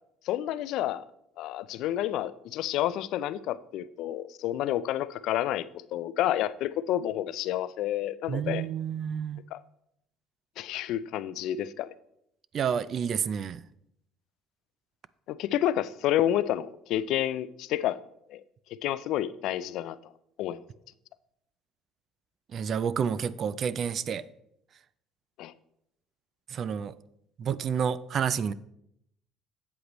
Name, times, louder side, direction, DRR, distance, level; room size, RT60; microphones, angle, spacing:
voice 1, 0.3-1.0 1.4-8.7 9.5-9.6 10.6-11.9 15.3-18.0 18.3-18.4 18.8-20.0 20.4-20.6 25.4-25.5, left 12 dB, 70° left, 0.4 m, -29 dB
voice 2, 8.3-9.4 12.5-13.6 22.5-24.2 26.5-26.9 27.4-28.5, right 7 dB, 45° right, 0.4 m, -29 dB
8.1 x 8.0 x 3.0 m
cardioid pair, 105°, 0 cm